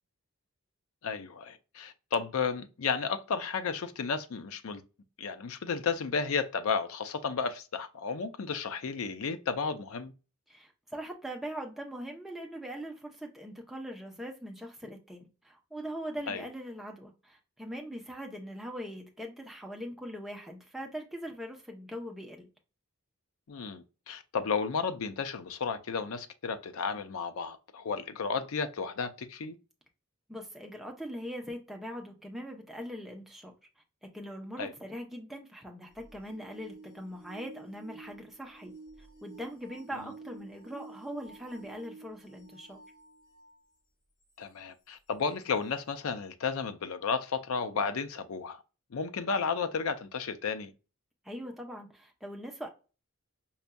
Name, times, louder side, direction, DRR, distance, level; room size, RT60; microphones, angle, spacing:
voice 1, 1.0-4.8 5.2-10.1 16.3-16.4 23.5-29.6 34.6-34.7 44.4-48.6 48.9-50.7, left 5 dB, 70° left, 0.5 m, -33 dB
voice 2, 10.5-22.5 30.3-33.5 34.0-38.7 39.0-42.8 51.2-52.7, equal, ahead, 0.6 m, -41 dB
sound 1, 35.9-43.6 44.3-44.4 45.4-45.5, right 3 dB, 40° left, 1.5 m, -51 dB
5.5 x 2.6 x 2.2 m
head